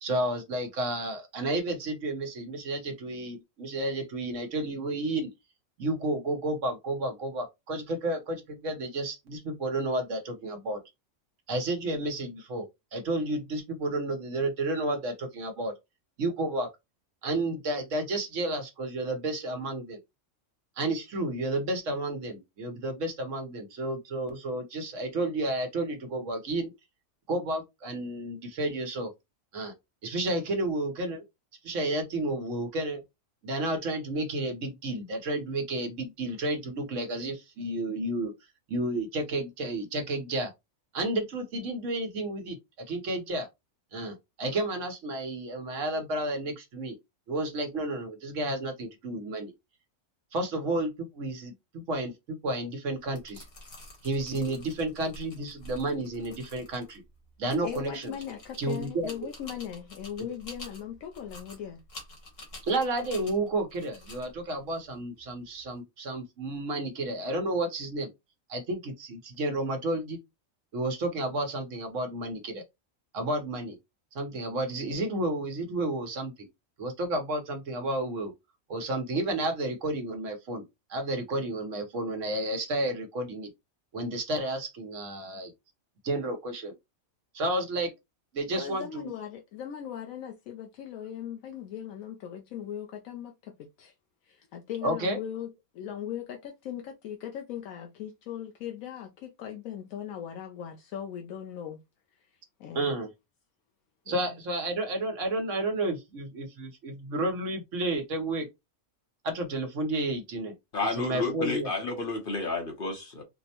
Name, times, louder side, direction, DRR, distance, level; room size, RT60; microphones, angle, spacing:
voice 1, 0.0-5.3 5.8-10.8 11.5-12.7 12.9-15.7 16.2-16.7 17.2-20.0 20.8-26.7 27.3-29.1 29.5-29.7 30.0-31.2 31.6-33.0 33.4-38.3 38.7-40.5 40.9-42.6 42.9-43.5 43.9-47.0 47.3-49.5 50.3-53.4 54.0-57.0 57.4-58.1 58.6-59.1 62.6-68.1 68.5-70.2 70.7-72.6 73.1-73.8 74.1-76.5 76.8-78.3 78.7-80.6 80.9-83.5 83.9-85.5 86.0-86.7 87.3-87.9 88.3-89.1 94.8-95.2 102.7-103.1 104.1-108.5 109.2-110.5 110.9-111.7, right 2 dB, 70° right, 1.2 m, -31 dB
sound 1, 53.0-65.7, left 1 dB, 65° left, 1.7 m, -49 dB
voice 2, 57.6-61.8 88.5-93.9 94.3-101.8 102.6-102.9 104.1-104.3, left 9 dB, 85° left, 1.0 m, -39 dB
voice 3, 110.7-113.2, left 3 dB, 45° left, 0.9 m, -31 dB
4.3 x 2.1 x 2.8 m
omnidirectional pair, 1.4 m